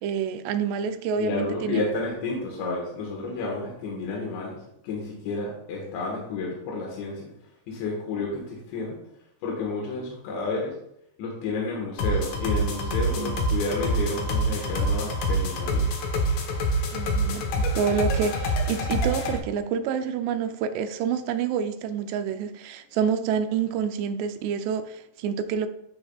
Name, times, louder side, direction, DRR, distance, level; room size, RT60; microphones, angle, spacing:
voice 1, 0.0-1.9 12.8-13.4 16.9-25.7, right 7 dB, 80° right, 2.6 m, -28 dB
voice 2, 1.2-4.6 4.8-7.3 7.7-9.0 9.4-10.8 11.2-15.9, left 3 dB, 85° left, 3.7 m, -31 dB
sound 1, 12.0-19.4, equal, 70° left, 2.0 m, -26 dB
15.0 x 5.3 x 2.3 m
omnidirectional pair, 5.0 m